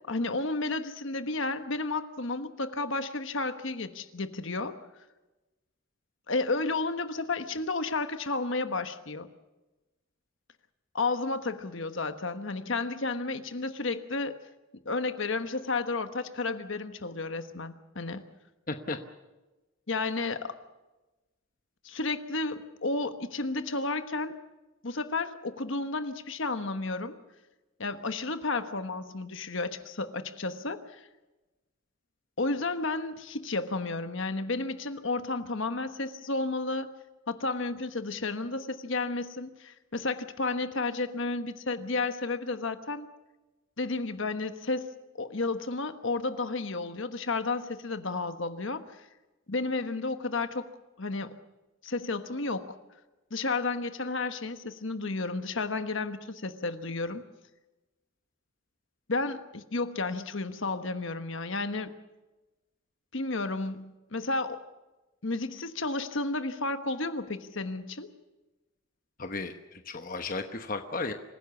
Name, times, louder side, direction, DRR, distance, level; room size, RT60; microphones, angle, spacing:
voice 1, 0.1-4.7 6.3-9.3 10.9-14.4 14.8-18.2 19.9-20.6 21.8-24.3 24.8-27.2 27.8-31.0 32.4-36.9 37.3-43.1 43.8-44.9 45.2-49.1 49.5-50.7 51.0-51.3 51.8-52.8 53.3-57.2 59.1-61.9 63.1-64.6 65.2-68.1, left 3 dB, 60° left, 9 dB, 1.3 m, -32 dB
voice 2, 18.7-19.0 69.2-71.1, left 3 dB, 40° left, 7 dB, 1.0 m, -34 dB
26.0 x 16.0 x 7.2 m, 1.1 s
head